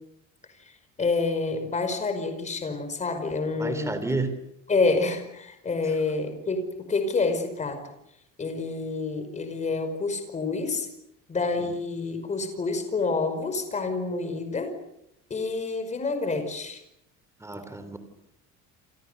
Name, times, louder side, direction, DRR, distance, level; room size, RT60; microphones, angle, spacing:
voice 1, 1.0-4.0 4.7-7.8 8.4-10.9 11.3-14.7 15.3-16.8, left 3 dB, 20° left, 8 dB, 5.1 m, -28 dB
voice 2, 3.6-4.3 17.4-18.0, right 3 dB, 10° right, 10 dB, 3.6 m, -30 dB
29.0 x 28.5 x 6.7 m, 0.80 s
cardioid pair, 165°, 34 cm